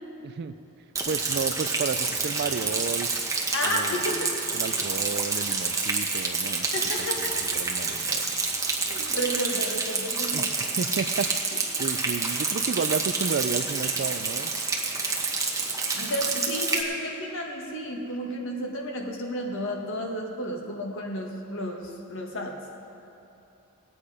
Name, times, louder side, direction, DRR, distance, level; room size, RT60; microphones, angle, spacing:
voice 1, 0.2-0.5 1.1-3.1 3.6-4.0 4.5-6.7 7.2-7.3 7.5-8.2 10.3-14.5, right 5 dB, 50° right, 13 dB, 0.4 m, -32 dB
Rain, 1.0-16.8, right 4 dB, 15° right, 1.2 m, -28 dB
voice 2, 3.5-4.3 6.7-7.3 8.9-10.5 15.9-22.5, equal, 60° left, 1 dB, 1.7 m, -32 dB
19.0 x 8.6 x 4.9 m, 2.9 s
head